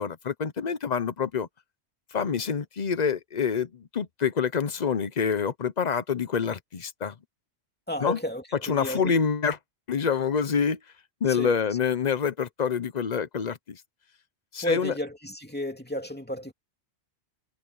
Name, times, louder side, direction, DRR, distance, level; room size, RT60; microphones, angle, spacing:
voice 1, 0.0-1.5 2.1-7.2 8.0-8.2 8.6-9.6 9.9-10.8 11.2-13.8 14.5-14.9, left 6 dB, 45° left, 0.9 m, -27 dB
voice 2, 7.9-9.1 11.3-11.6 14.6-16.5, equal, 10° left, 2.6 m, -32 dB
omnidirectional pair, 1.2 m